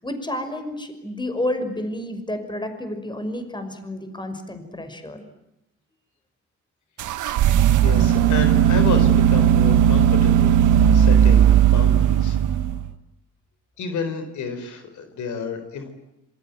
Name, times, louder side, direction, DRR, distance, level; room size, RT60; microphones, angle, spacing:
voice 1, 0.0-5.2, left 1 dB, 15° left, 8 dB, 5.8 m, -30 dB
sound 1, 7.0-12.9, right 10 dB, 80° right, 1.4 m, -16 dB
voice 2, 7.8-12.7 13.8-15.9, left 5 dB, 75° left, 8 dB, 4.5 m, -31 dB
27.0 x 23.0 x 9.3 m, 0.90 s
cardioid pair, 90°, 30 cm